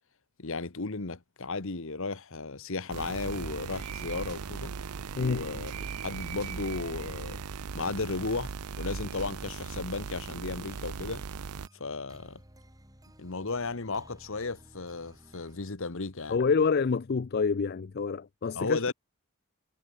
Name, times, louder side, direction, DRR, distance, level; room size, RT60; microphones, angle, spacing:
voice 1, 0.4-4.7 5.2-5.7 6.0-7.4 7.7-8.5 8.8-11.2 11.7-12.4 13.2-16.4 18.5-18.9, left 3 dB, 60° left, 1.3 m, -34 dB
sound 1, 2.9-11.7, right 5 dB, 90° right, 0.7 m, -38 dB
sound 2, 9.8-15.7, equal, 15° right, 6.3 m, -56 dB
voice 2, 16.3-18.8, left 5 dB, 45° left, 0.4 m, -27 dB
head